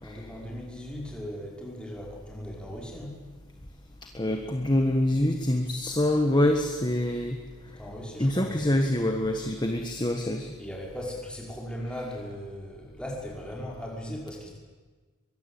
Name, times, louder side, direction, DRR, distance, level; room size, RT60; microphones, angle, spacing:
voice 1, 0.0-3.2 7.8-8.5 10.6-14.5, equal, 5° left, -2 dB, 5.6 m, -38 dB
voice 2, 4.1-7.4 8.2-10.5, left 1 dB, 20° left, 4 dB, 1.5 m, -25 dB
23.5 x 22.0 x 8.5 m, 1.3 s
head